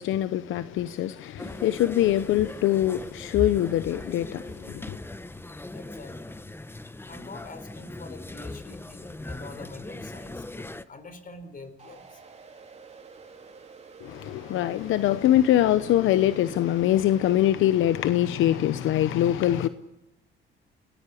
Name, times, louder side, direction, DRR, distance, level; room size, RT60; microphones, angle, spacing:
voice 1, 0.0-5.0 14.0-19.7, left 12 dB, 85° left, 0.9 m, -23 dB
sound 1, 1.4-10.8, left 2 dB, 10° left, 1.1 m, -39 dB
voice 2, 5.7-6.3 7.0-12.2, left 3 dB, 45° left, 4.3 m, -45 dB
sound 2, 11.8-17.5, right 5 dB, 35° right, 3.4 m, -49 dB
28.5 x 18.5 x 8.5 m
cardioid pair, 90°, 20 cm